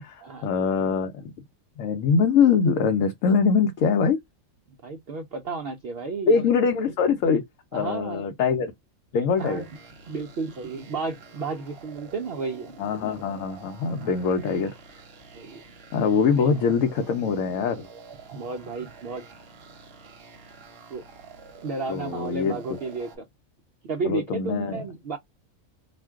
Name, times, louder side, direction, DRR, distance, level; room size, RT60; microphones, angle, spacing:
voice 1, 0.0-1.3 1.8-4.2 6.3-7.4 7.7-8.7 9.1-9.7 12.8-14.7 15.9-17.9 21.9-22.6 24.0-24.8, left 5 dB, 70° left, 0.9 m, -23 dB
voice 2, 4.8-6.4 7.7-8.2 9.4-9.7 10.1-12.7 14.0-14.1 15.3-15.6 16.4-16.5 18.3-19.3 20.9-21.0 21.6-23.3 23.8-25.2, right 4 dB, 70° right, 0.5 m, -32 dB
sound 1, 9.4-23.2, right 4 dB, 50° right, 0.8 m, -47 dB
2.5 x 2.2 x 3.4 m
omnidirectional pair, 1.5 m